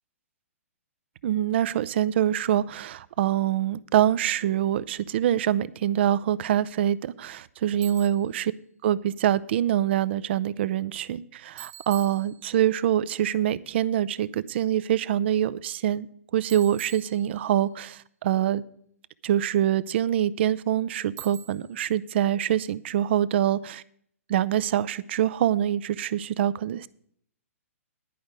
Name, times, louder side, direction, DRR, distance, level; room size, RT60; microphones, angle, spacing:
voice 1, 1.2-8.5 8.8-16.1 16.3-18.6 19.2-23.8 24.3-26.9, right 11 dB, 50° right, 17 dB, 0.5 m, -25 dB
Bicycle, 7.8-8.3 11.6-12.8 16.5-17.7 21.2-21.8, right 11 dB, 30° right, 1.0 m, -45 dB
11.0 x 5.2 x 8.0 m, 0.65 s
figure-of-eight pair, 120°, 8 cm